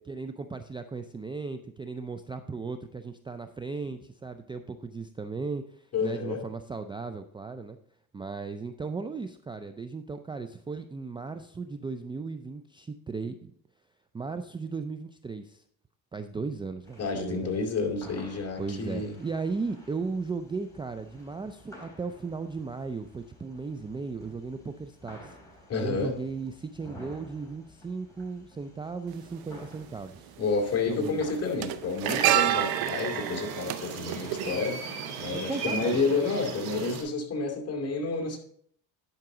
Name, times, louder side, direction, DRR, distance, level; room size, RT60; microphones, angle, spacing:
voice 1, 0.1-7.8 8.1-13.5 14.1-15.6 16.1-17.6 18.6-25.4 25.8-30.3 30.9-31.2 35.3-36.0, right 4 dB, 15° right, 9 dB, 0.4 m, -36 dB
voice 2, 5.9-6.4 17.0-19.2 25.7-26.1 30.4-34.8 35.2-38.4, left 4 dB, 40° left, 1 dB, 2.4 m, -30 dB
sound 1, 16.8-32.2, left 1 dB, 10° left, 4.0 m, -52 dB
sound 2, 29.1-29.2 30.4-30.7 31.0-35.2 35.5-35.7, right 14 dB, 70° right, 0.6 m, -29 dB
sound 3, 32.0-37.0, right 5 dB, 85° right, 3.2 m, -36 dB
11.0 x 5.9 x 3.8 m, 0.63 s
cardioid pair, 100°, 38 cm